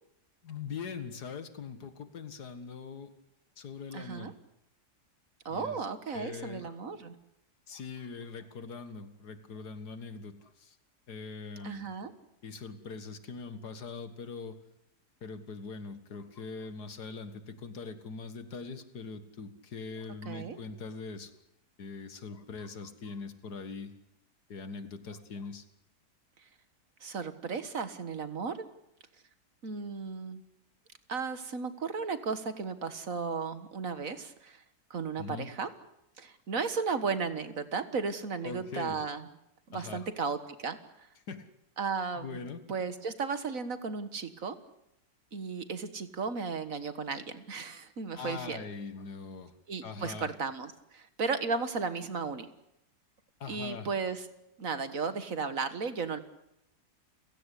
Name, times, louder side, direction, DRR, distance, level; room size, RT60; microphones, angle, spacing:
voice 1, 0.4-3.1 3.6-4.3 5.5-5.8 6.1-6.7 7.7-10.7 11.1-11.9 12.4-14.6 15.2-21.3 21.8-23.9 24.5-25.6 35.2-35.5 38.4-39.0 39.7-40.1 41.3-41.5 42.2-42.6 48.2-49.5 49.8-50.3 53.4-53.9, left 5 dB, 75° left, 11 dB, 2.2 m, -42 dB
voice 2, 3.9-4.3 5.5-7.2 11.6-12.1 20.3-20.6 27.0-28.7 29.6-30.4 31.1-34.6 34.9-35.7 36.2-39.3 39.7-41.1 41.8-42.4 42.7-44.6 45.3-48.6 49.7-52.5 53.5-54.3 54.6-56.2, right 5 dB, 55° right, 11 dB, 1.8 m, -35 dB
29.5 x 16.5 x 8.4 m, 0.85 s
omnidirectional pair, 1.7 m